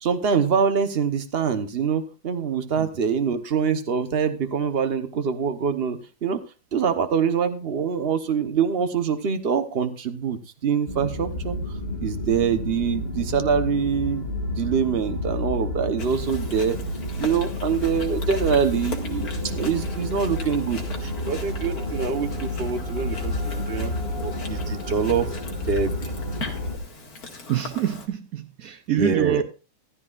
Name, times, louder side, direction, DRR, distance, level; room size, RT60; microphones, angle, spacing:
voice 1, 0.0-6.4 6.7-11.6 12.0-14.3 14.6-16.8 17.2-23.9 24.2-26.1 29.0-29.4, right 6 dB, 40° right, 0.9 m, -25 dB
sound 1, 10.9-26.8, left 1 dB, 30° left, 2.7 m, -30 dB
Chewing mastication, 16.0-28.1, left 3 dB, 45° left, 2.4 m, -40 dB
voice 2, 27.5-29.4, right 10 dB, 75° right, 0.7 m, -26 dB
15.0 x 12.5 x 2.5 m
omnidirectional pair, 2.3 m